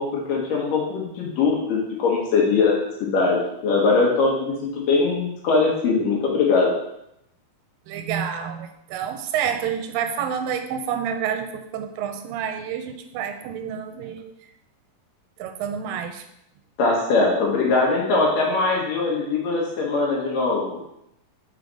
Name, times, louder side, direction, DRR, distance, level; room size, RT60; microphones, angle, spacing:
voice 1, 0.0-2.7 3.0-4.5 4.9-6.7 16.8-20.8, left 4 dB, 75° left, -2 dB, 3.1 m, -21 dB
voice 2, 7.9-14.3 15.4-16.3, right 8 dB, 90° right, 7 dB, 2.3 m, -28 dB
6.8 x 4.0 x 4.9 m, 0.80 s
omnidirectional pair, 4.0 m